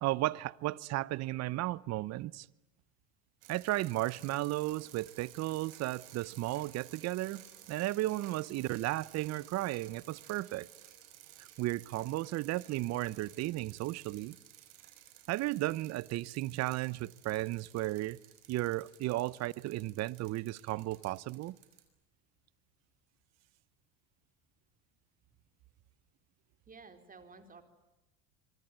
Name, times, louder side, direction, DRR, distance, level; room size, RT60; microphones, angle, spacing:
voice 1, 0.0-2.5 3.5-10.7 11.6-14.4 15.3-18.2 18.5-21.6, right 17 dB, 50° right, 0.9 m, -34 dB
sound 1, 3.4-21.8, right 13 dB, 70° right, 5.7 m, -56 dB
voice 2, 26.6-27.6, right 4 dB, 25° right, 4.2 m, -54 dB
25.0 x 24.0 x 9.1 m
supercardioid pair, 95°, 35 cm